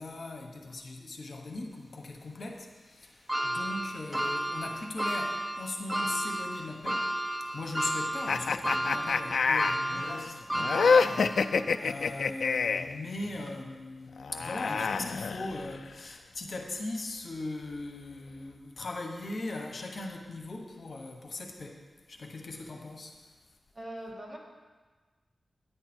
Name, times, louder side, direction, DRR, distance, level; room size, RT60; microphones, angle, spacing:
voice 1, 0.0-23.2, left 2 dB, 60° left, 2 dB, 1.2 m, -39 dB
sound 1, 3.3-11.7 12.1-12.2 13.4-13.5, right 1 dB, 10° right, 0.8 m, -32 dB
sound 2, 8.3-13.0 14.2-15.9, left 5 dB, 90° left, 0.3 m, -27 dB
voice 2, 23.7-24.4, right 1 dB, 25° right, -2 dB, 2.0 m, -41 dB
10.5 x 9.7 x 4.5 m, 1.3 s
wide cardioid pair, 110°, 0 cm